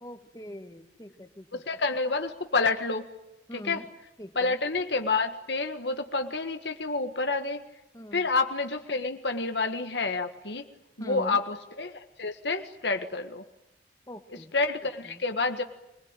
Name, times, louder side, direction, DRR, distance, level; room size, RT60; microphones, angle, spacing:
voice 1, 0.0-1.6 3.5-3.9 4.2-4.6 7.9-8.3 11.0-11.4 14.1-14.5 15.0-15.2, equal, 20° left, 8 dB, 1.8 m, -42 dB
voice 2, 1.5-3.1 3.5-3.8 4.4-7.6 8.1-10.6 11.0-13.4 14.5-15.6, left 3 dB, 70° left, 6 dB, 1.7 m, -29 dB
26.0 x 21.0 x 9.1 m, 0.91 s
head